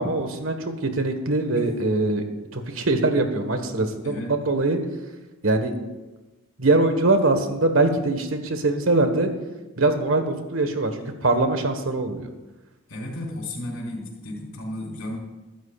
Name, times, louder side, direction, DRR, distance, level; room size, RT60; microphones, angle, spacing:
voice 1, 0.0-2.2 2.5-4.8 5.4-5.7 6.6-9.3 9.8-12.3, right 2 dB, 75° right, 6 dB, 1.5 m, -22 dB
voice 2, 12.9-15.2, left 1 dB, 85° left, -2 dB, 4.4 m, -34 dB
23.0 x 12.5 x 2.5 m, 1.1 s
head